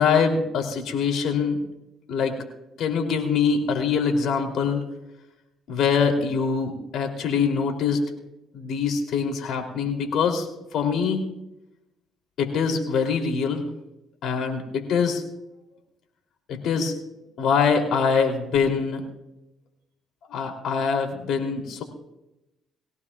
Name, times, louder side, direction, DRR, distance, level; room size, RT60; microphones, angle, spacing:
voice 1, 0.0-1.6 2.1-2.4 2.8-4.8 5.7-8.1 8.5-10.5 10.7-11.2 12.4-13.6 14.2-15.2 16.5-17.0 17.4-19.0 20.3-21.8, left 6 dB, 70° left, 4 dB, 3.1 m, -24 dB
22.0 x 17.0 x 2.4 m, 0.92 s
cardioid pair, 90°, 0 cm